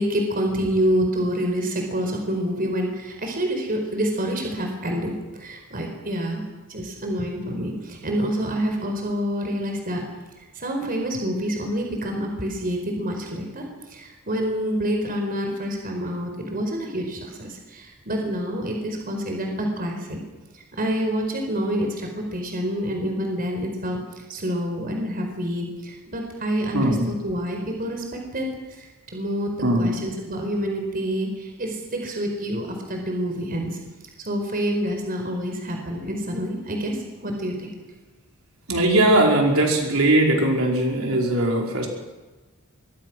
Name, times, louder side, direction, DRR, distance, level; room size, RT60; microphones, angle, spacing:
voice 1, 0.0-6.4 6.7-10.0 10.5-20.2 20.5-24.0 24.3-28.5 28.8-28.9 29.1-33.8 34.2-37.7, equal, 40° right, 3 dB, 4.6 m, -27 dB
voice 2, 26.7-27.1 29.6-29.9 38.7-41.9, right 1 dB, 70° right, 0 dB, 5.0 m, -20 dB
25.5 x 22.5 x 6.2 m, 1.2 s
head